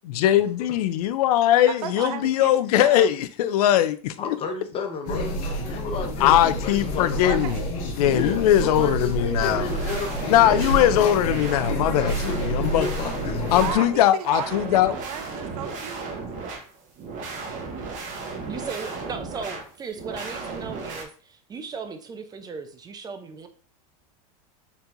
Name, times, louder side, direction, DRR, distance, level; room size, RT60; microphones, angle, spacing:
voice 1, 0.1-4.1 6.2-7.6 8.0-9.7 10.3-12.9 13.5-14.9, left 12 dB, 80° left, 0.4 m, -20 dB
voice 2, 1.7-3.1 7.3-7.6 13.6-16.1, right 9 dB, 85° right, 0.6 m, -34 dB
voice 3, 4.2-5.4 5.6-7.4 8.1-11.2 11.9-13.7, left 4 dB, 30° left, 0.9 m, -33 dB
sound 1, 5.1-13.8, equal, 65° left, 1.3 m, -29 dB
sound 2, 9.4-21.0, right 4 dB, 40° right, 1.0 m, -35 dB
voice 4, 18.5-23.5, right 5 dB, 20° right, 0.6 m, -37 dB
4.4 x 4.0 x 2.5 m
supercardioid pair, 125°, 19 cm